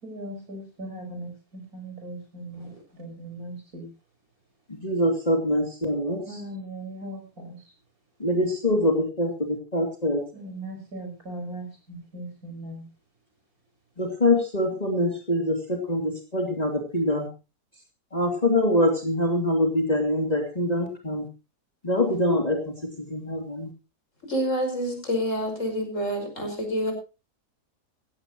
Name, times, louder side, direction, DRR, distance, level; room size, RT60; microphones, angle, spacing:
voice 1, 0.0-3.9 6.2-7.6 10.3-12.9, right 1 dB, 60° right, 4 dB, 5.8 m, -39 dB
voice 2, 4.8-6.2 8.2-10.2 14.0-17.3 18.1-21.2 21.8-22.6 23.1-23.7, left 1 dB, 25° left, 2 dB, 2.7 m, -24 dB
voice 3, 24.3-26.9, equal, 45° left, 4 dB, 5.6 m, -27 dB
17.0 x 16.0 x 3.0 m, 0.30 s
omnidirectional pair, 1.7 m